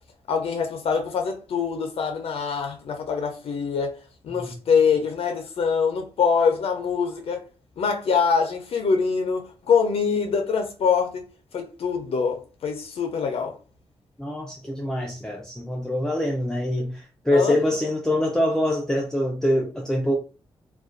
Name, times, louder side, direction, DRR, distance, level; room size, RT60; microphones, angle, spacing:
voice 1, 0.3-4.0 4.2-7.4 7.8-11.3 11.5-13.6 17.3-17.6, left 5 dB, 75° left, 0.4 m, -24 dB
voice 2, 14.2-20.2, left 1 dB, 5° left, 0.4 m, -24 dB
2.3 x 2.2 x 2.4 m
cardioid pair, 80°, 10 cm